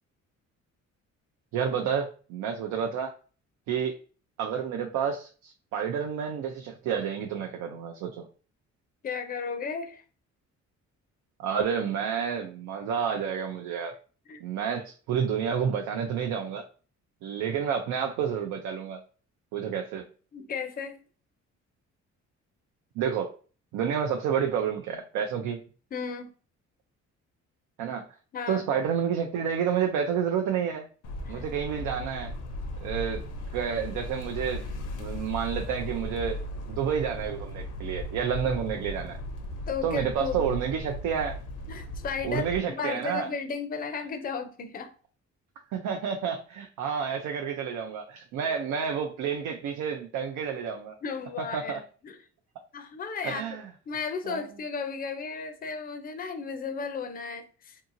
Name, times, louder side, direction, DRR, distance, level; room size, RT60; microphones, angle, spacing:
voice 1, 1.5-3.1 3.7-4.0 4.4-8.3 11.4-14.0 14.4-16.6 17.2-19.0 19.5-20.0 23.0-23.3 23.7-25.6 27.8-28.1 28.5-30.9 31.3-32.3 32.8-33.2 33.5-34.6 35.0-36.4 36.7-39.2 39.8-41.4 42.2-43.3 45.7-51.0 51.5-51.8 53.2-53.6 54.3-54.4, right 7 dB, 85° right, 3 dB, 0.5 m, -29 dB
voice 2, 9.0-10.0 14.3-14.4 20.3-20.9 25.9-26.3 28.3-28.6 31.3-31.5 38.4-38.6 39.7-40.5 41.7-42.5 42.8-44.9 51.0-52.2 52.7-53.6 53.9-57.8, left 5 dB, 30° left, 8 dB, 0.4 m, -34 dB
sound 1, 31.0-42.6, left 1 dB, 80° left, 0.7 m, -37 dB
2.8 x 2.7 x 2.5 m, 0.38 s
cardioid pair, 90°, 30 cm